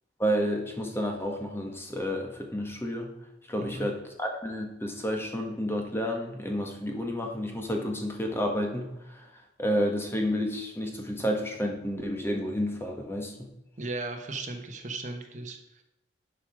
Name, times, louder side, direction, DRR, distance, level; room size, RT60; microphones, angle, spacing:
voice 1, 0.2-3.1 3.5-9.2 9.6-13.5, equal, 15° left, 2 dB, 1.4 m, -30 dB
voice 2, 13.8-15.8, right 2 dB, 40° right, 4 dB, 1.2 m, -36 dB
11.0 x 5.1 x 4.9 m, 0.90 s
head